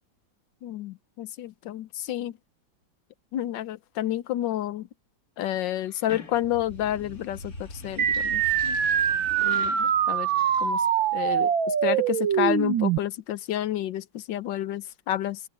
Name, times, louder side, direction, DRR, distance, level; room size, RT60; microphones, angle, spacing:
voice 1, 0.6-2.4 3.3-4.9 5.4-8.8 9.4-10.3 10.6-10.9 11.1-15.4, left 12 dB, 70° left, 1.4 m, -30 dB
sound 1, 5.9-11.2, left 1 dB, 45° left, 3.5 m, -43 dB
sound 2, 8.0-13.0, right 9 dB, 80° right, 2.0 m, -24 dB
open air
omnidirectional pair, 2.1 m